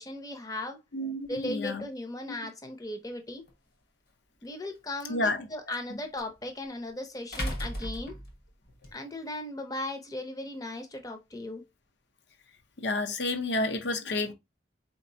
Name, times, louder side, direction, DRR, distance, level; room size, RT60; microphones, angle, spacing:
voice 1, 0.0-0.8 1.3-3.4 4.4-8.1 8.9-11.6, left 1 dB, 20° left, 0.6 m, -37 dB
voice 2, 0.9-1.8 2.3-2.4 5.1-5.5 12.8-14.3, left 2 dB, 70° left, 0.7 m, -30 dB
sound 1, 3.5-3.6 6.2-6.3 7.3-8.9, equal, 55° left, 1.2 m, -35 dB
4.2 x 2.9 x 2.7 m
head